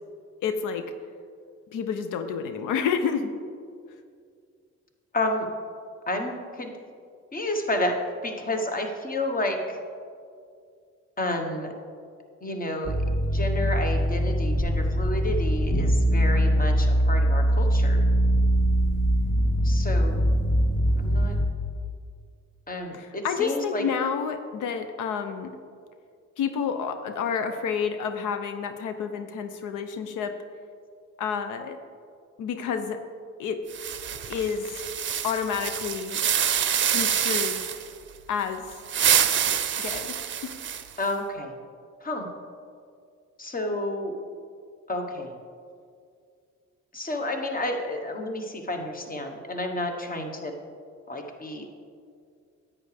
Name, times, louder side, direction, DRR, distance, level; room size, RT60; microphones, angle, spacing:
voice 1, 0.4-0.9 1.7-3.3 22.9-25.6 26.4-30.3 31.2-31.8 32.4-33.0 33.4-33.6 34.3-34.8 35.2-36.2 36.9-37.6 38.3-38.7 39.8-40.2 40.4-40.6, left 6 dB, 85° left, 8 dB, 0.6 m, -29 dB
voice 2, 5.1-5.5 6.1-6.7 7.3-9.8 11.2-11.7 12.4-13.0 13.3-18.0 19.6-20.2 21.0-21.4 22.7-23.8 41.0-41.5 42.0-42.3 43.4-44.2 44.9-45.4 46.9-50.5 51.1-51.6, left 1 dB, 30° left, 4 dB, 1.1 m, -30 dB
sound 1, 12.8-21.4, equal, 45° left, 2.1 m, -22 dB
sound 2, 33.7-37.9 38.7-41.0, right 8 dB, 40° right, 0.6 m, -26 dB
10.0 x 8.5 x 3.3 m, 2.2 s
cardioid pair, 90°, 30 cm